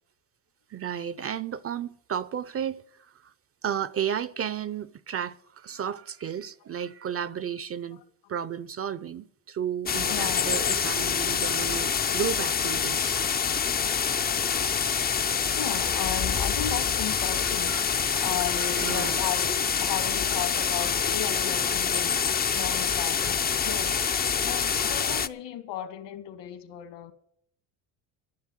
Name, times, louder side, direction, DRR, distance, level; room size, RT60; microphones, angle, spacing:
voice 1, 0.7-2.8 3.2-3.3 3.6-8.0 8.3-13.1 17.7-18.3 18.6-19.2, right 8 dB, 30° right, 0.6 m, -33 dB
Rain in the wood, 9.9-25.3, left 7 dB, 20° left, 0.5 m, -26 dB
voice 2, 10.1-10.6 15.6-17.8 18.2-24.1 24.4-27.1, left 10 dB, 65° left, 2.1 m, -35 dB
12.5 x 7.1 x 9.7 m
supercardioid pair, 90°, 46 cm